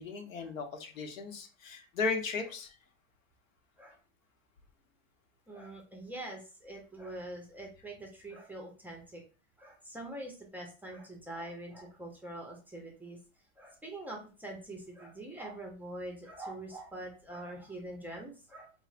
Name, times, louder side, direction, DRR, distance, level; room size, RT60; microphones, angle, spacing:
voice 1, 0.0-2.7, left 4 dB, 85° left, 5 dB, 0.8 m, -36 dB
voice 2, 5.5-9.2 9.6-13.2 13.6-18.7, right 1 dB, 5° right, 0 dB, 0.5 m, -44 dB
4.1 x 2.1 x 2.4 m, 0.35 s
hypercardioid pair, 115°, 39 cm